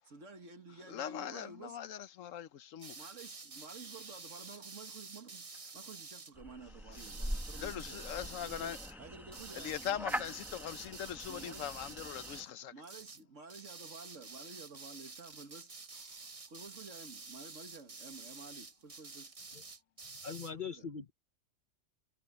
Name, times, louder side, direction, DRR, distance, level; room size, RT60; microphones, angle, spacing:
voice 1, 0.1-1.8 3.0-8.1 8.4-10.2 11.3-11.7 12.7-15.7 16.5-19.3 20.7-20.9, right 4 dB, 70° right, 2.1 m, -52 dB
voice 2, 0.9-2.9 7.6-8.8 9.6-12.7, left 9 dB, 80° left, 1.1 m, -41 dB
sound 1, 2.8-6.3 6.9-8.9 9.3-12.5 12.8-13.2 13.5-20.5, right 4 dB, 30° right, 1.0 m, -49 dB
sound 2, 6.3-12.4, equal, ahead, 1.1 m, -43 dB
voice 3, 20.2-21.1, left 6 dB, 45° left, 1.0 m, -41 dB
omnidirectional pair, 1.3 m